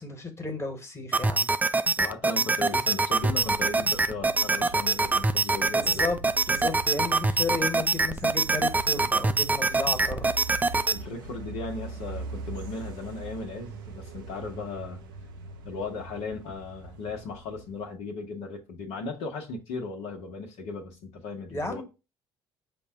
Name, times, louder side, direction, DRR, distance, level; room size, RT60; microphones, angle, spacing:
voice 1, 0.0-1.5 5.8-6.2 6.5-10.3 21.5-21.8, left 3 dB, 25° left, 1.4 m, -33 dB
sound 1, 1.1-11.0, right 3 dB, 15° right, 0.3 m, -25 dB
voice 2, 2.0-6.1 10.9-15.0 15.6-21.8, left 3 dB, 70° left, 1.0 m, -37 dB
sound 2, 3.2-18.0, right 3 dB, 85° right, 0.5 m, -42 dB
5.1 x 2.2 x 4.7 m
hypercardioid pair, 55°, 11 cm